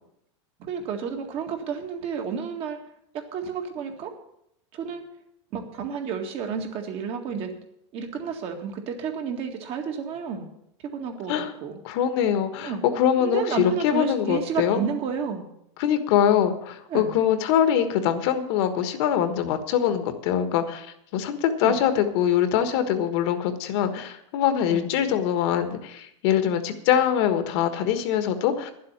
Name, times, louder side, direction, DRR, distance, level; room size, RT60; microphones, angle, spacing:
voice 1, 0.6-2.8 3.1-4.1 4.7-5.0 5.5-7.5 7.9-10.5 10.8-11.8 12.6-12.8 13.2-15.5 16.9-17.1 21.6-21.8 24.7-24.9, right 6 dB, 40° right, 4 dB, 1.9 m, -31 dB
voice 2, 11.8-14.8 15.8-20.9 21.1-28.7, left 9 dB, 55° left, 9 dB, 1.4 m, -23 dB
11.0 x 7.6 x 8.8 m, 0.77 s
supercardioid pair, 145°, 16 cm